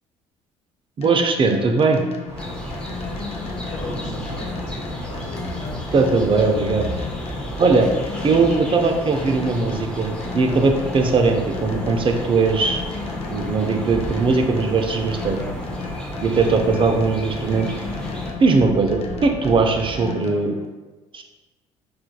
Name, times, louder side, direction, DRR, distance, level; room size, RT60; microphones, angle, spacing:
sound 1, 1.0-20.7, left 6 dB, 45° left, 0.5 m, -36 dB
voice 1, 1.0-2.0 5.9-6.9 7.6-7.9 8.2-12.8 13.3-15.4 16.2-17.7 18.4-20.6 21.1-21.2, right 4 dB, 35° right, 4 dB, 0.5 m, -19 dB
sound 2, 2.3-20.0, right 1 dB, 20° right, 1.0 m, -37 dB
sound 3, 2.4-18.3, equal, 5° left, 0.6 m, -33 dB
voice 2, 3.6-5.4 7.5-7.8 16.3-16.6, left 3 dB, 80° left, -4 dB, 1.1 m, -38 dB
4.4 x 2.4 x 2.2 m, 1.2 s
supercardioid pair, 65°, 14 cm